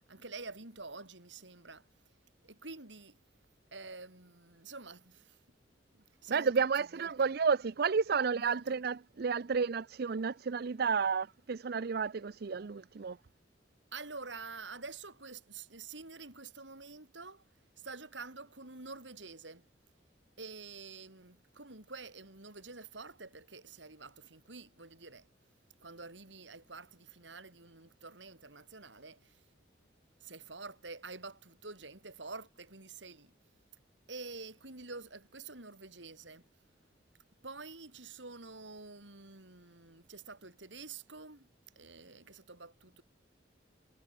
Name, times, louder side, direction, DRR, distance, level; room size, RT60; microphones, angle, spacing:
voice 1, 0.1-1.9 2.4-3.2 3.7-5.4 5.9-7.4 8.3-8.8 13.9-17.4 17.8-19.7 20.4-25.3 25.8-29.4 30.2-33.3 34.1-36.5 37.4-41.5 41.8-43.0, right 3 dB, 80° right, 5.6 m, -48 dB
voice 2, 6.3-13.2, right 5 dB, 55° right, 0.5 m, -31 dB
head